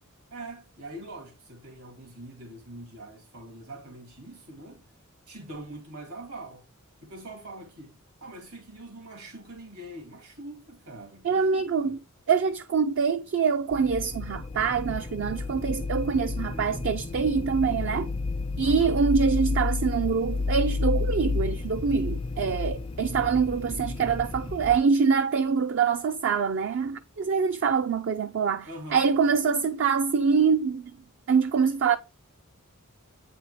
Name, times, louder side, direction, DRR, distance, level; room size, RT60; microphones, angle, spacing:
voice 1, 0.3-4.8 5.3-6.6 7.0-7.9 8.2-12.0 16.5-16.9 18.6-19.0 28.7-29.1, right 1 dB, 80° right, 2.3 m, -43 dB
voice 2, 11.2-12.0 12.3-18.1 18.6-30.9 31.3-32.0, right 5 dB, 55° right, 0.4 m, -25 dB
sound 1, 13.7-24.8, left 3 dB, 25° left, 0.3 m, -31 dB
8.5 x 4.3 x 3.1 m
head